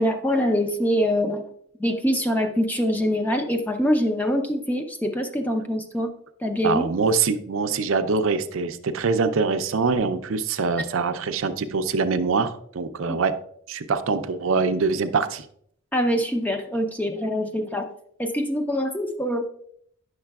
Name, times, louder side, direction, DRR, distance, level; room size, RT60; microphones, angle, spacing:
voice 1, 0.0-1.4 1.8-6.1 6.4-6.9 13.1-13.2 15.9-17.9 18.2-19.5, equal, 10° left, 4 dB, 0.5 m, -24 dB
voice 2, 6.6-13.3 13.7-15.4, right 4 dB, 75° right, 9 dB, 0.5 m, -24 dB
9.5 x 6.4 x 2.3 m, 0.68 s
head